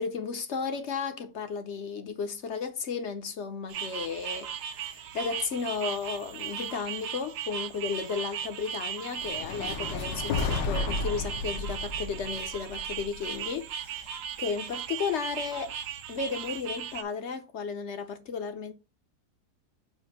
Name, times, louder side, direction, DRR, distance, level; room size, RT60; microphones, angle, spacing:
voice 1, 0.0-14.1 14.4-15.7 16.1-18.7, left 5 dB, 55° left, 0.8 m, -34 dB
sound 1, 3.7-17.0, right 8 dB, 65° right, 0.9 m, -37 dB
sound 2, 9.2-13.4, left 4 dB, 85° left, 1.5 m, -33 dB
7.7 x 2.6 x 5.3 m
omnidirectional pair, 1.9 m